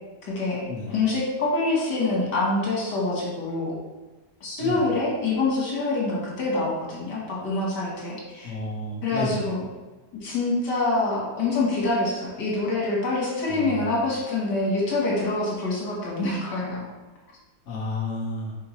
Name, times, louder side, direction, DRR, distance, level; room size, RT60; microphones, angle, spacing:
voice 1, 0.3-3.7 4.4-8.6 9.0-9.6 10.2-16.9, left 2 dB, 85° left, -4 dB, 2.1 m, -26 dB
voice 2, 8.4-9.5 13.5-13.9 17.7-18.6, left 1 dB, 45° left, -3 dB, 1.4 m, -31 dB
6.9 x 4.7 x 3.2 m, 1.2 s
omnidirectional pair, 1.8 m